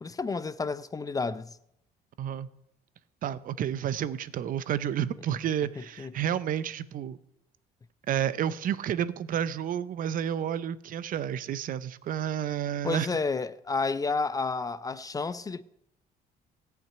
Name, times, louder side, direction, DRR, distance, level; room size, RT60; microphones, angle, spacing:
voice 1, 0.0-1.6 6.0-6.1 12.8-15.6, left 4 dB, 20° left, 0.4 m, -31 dB
voice 2, 3.2-7.2 8.1-13.1, right 10 dB, 55° right, 0.6 m, -30 dB
14.5 x 5.9 x 8.9 m
cardioid pair, 110°, 17 cm